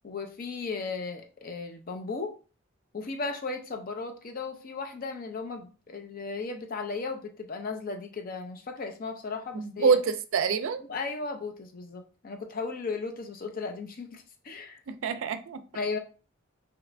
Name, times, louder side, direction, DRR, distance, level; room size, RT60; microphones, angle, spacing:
voice 1, 0.0-2.3 2.9-10.0 10.9-14.8 15.7-16.0, left 4 dB, 45° left, 0.5 m, -36 dB
voice 2, 9.5-10.8 14.9-15.6, right 5 dB, 70° right, 0.4 m, -26 dB
2.9 x 2.5 x 3.2 m
head